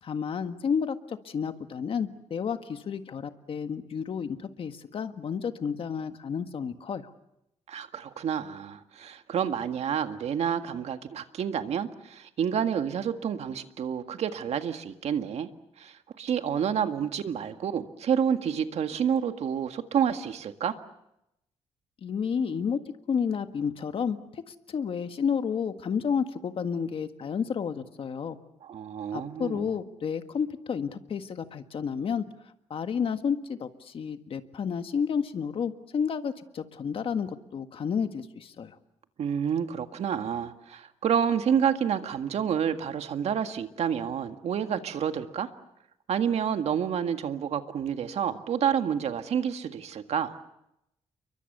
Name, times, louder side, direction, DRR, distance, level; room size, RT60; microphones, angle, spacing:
voice 1, 0.0-7.1 22.0-22.8 23.1-28.4 29.1-32.2 32.7-38.7, left 6 dB, 55° left, 8 dB, 1.7 m, -31 dB
voice 2, 7.7-15.5 15.8-20.8 28.6-29.7 39.2-45.5 46.1-50.4, right 8 dB, 75° right, 8 dB, 1.8 m, -29 dB
29.5 x 23.5 x 6.8 m, 0.84 s
wide cardioid pair, 130°, 11 cm